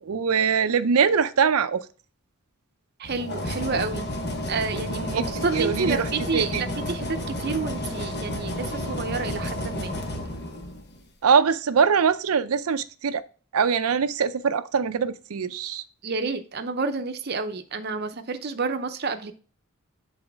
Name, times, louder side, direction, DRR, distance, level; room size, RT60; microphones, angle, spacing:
voice 1, 0.0-1.8 5.1-5.2 5.5-6.1 6.3-6.6 11.2-13.2 13.5-15.8, right 6 dB, 85° right, 0.5 m, -22 dB
sound 1, 3.0-11.0, left 1 dB, 50° left, 1.1 m, -31 dB
voice 2, 3.0-4.1 4.5-9.9 16.0-19.3, right 4 dB, 45° right, 0.7 m, -29 dB
8.0 x 4.1 x 3.5 m
head